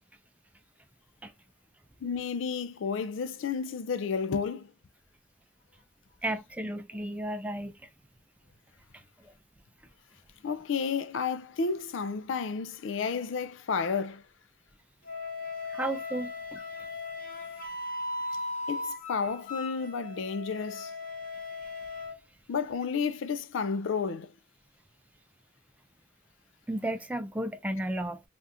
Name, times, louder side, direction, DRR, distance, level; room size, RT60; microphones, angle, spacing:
voice 1, 2.0-4.7 10.4-14.2 18.7-20.9 22.5-24.3, left 5 dB, 65° left, 0.4 m, -31 dB
voice 2, 6.2-7.7 8.9-9.3 15.7-16.6 26.7-28.2, right 1 dB, 5° right, 0.4 m, -34 dB
Wind instrument woodwind instrument, 15.0-22.1, left 2 dB, 40° left, 1.3 m, -38 dB
3.5 x 2.4 x 2.7 m
head